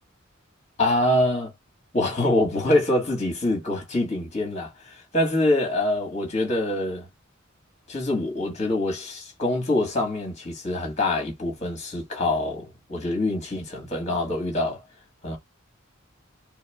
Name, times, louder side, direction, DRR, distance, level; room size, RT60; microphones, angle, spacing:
voice 1, 0.8-1.5 1.9-7.1 7.9-14.8 15.2-15.4, left 1 dB, 35° left, 1.8 m, -25 dB
4.7 x 2.1 x 3.5 m
head